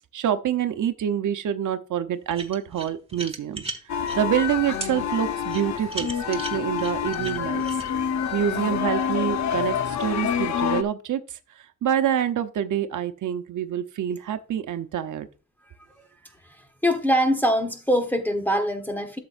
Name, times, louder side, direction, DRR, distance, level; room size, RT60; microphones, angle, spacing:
voice 1, 0.1-3.6 4.2-7.6 8.3-11.2 11.8-15.3, right 9 dB, 85° right, 0.8 m, -26 dB
sound 1, 2.3-4.2 4.8-4.9 5.5-7.9, right 3 dB, 20° right, 1.3 m, -36 dB
sound 2, 3.9-10.8, left 8 dB, 65° left, 0.8 m, -27 dB
voice 2, 16.4-19.2, equal, 5° left, 1.1 m, -23 dB
12.5 x 6.8 x 2.5 m
wide cardioid pair, 150°, 30 cm